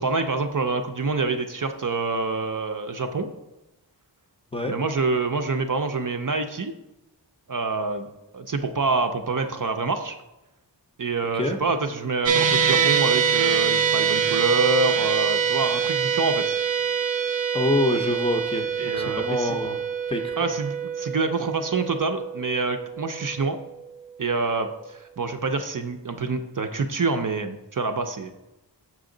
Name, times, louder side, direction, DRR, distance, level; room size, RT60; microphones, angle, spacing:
voice 1, 0.0-3.3 4.7-6.7 7.5-8.1 8.3-10.2 11.0-16.6 18.8-19.6 20.4-23.6 24.2-28.3, right 3 dB, 45° right, 6 dB, 0.6 m, -26 dB
sound 1, 12.3-24.6, right 7 dB, 90° right, 0.6 m, -25 dB
voice 2, 17.5-19.8 20.1-20.3, left 1 dB, 15° left, 4 dB, 0.6 m, -26 dB
6.1 x 6.1 x 3.8 m, 0.98 s
wide cardioid pair, 60°, 44 cm